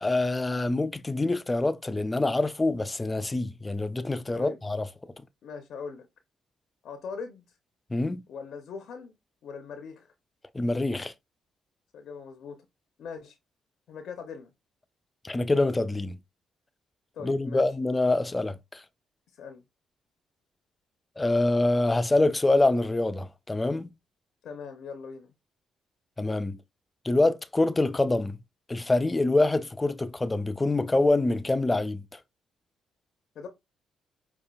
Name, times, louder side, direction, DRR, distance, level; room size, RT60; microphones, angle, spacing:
voice 1, 0.0-4.8 7.9-8.2 10.5-11.1 15.2-16.2 17.2-18.8 21.2-23.9 26.2-26.6 27.0-28.4 28.7-32.0, left 2 dB, 20° left, 0.4 m, -25 dB
voice 2, 5.4-6.1 6.8-7.4 8.3-9.1 9.4-10.1 11.9-12.7 13.0-13.4 13.9-14.5 17.1-17.6 19.4-19.6 24.4-25.3 33.4-33.5, left 5 dB, 70° left, 0.5 m, -40 dB
5.0 x 2.4 x 2.3 m
supercardioid pair, 60°, 0 cm